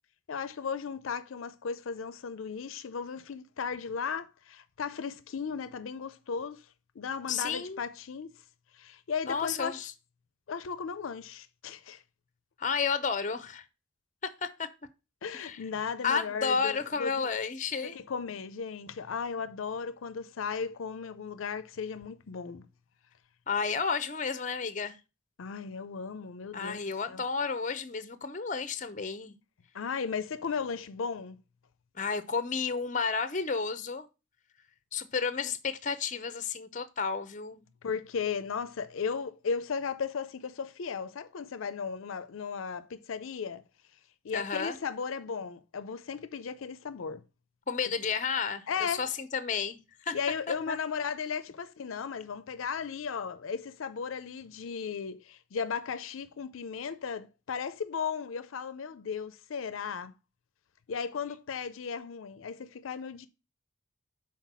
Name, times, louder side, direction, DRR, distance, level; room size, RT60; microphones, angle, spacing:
voice 1, 0.3-6.6 7.0-8.4 8.7-9.9 10.5-12.0 15.2-17.3 17.8-22.7 25.4-27.2 29.7-31.4 37.8-43.6 44.2-47.2 48.7-49.1 50.1-60.1 60.9-63.3, left 6 dB, 80° left, 0.5 m, -36 dB
voice 2, 7.3-7.8 9.3-9.9 12.6-13.6 14.4-14.7 15.3-15.6 16.0-18.0 23.5-25.0 26.5-29.4 32.0-34.1 34.9-37.6 44.3-44.8 47.7-49.8 50.0-50.2 50.7-50.8, left 5 dB, 35° left, 0.6 m, -32 dB
5.7 x 4.4 x 5.9 m
head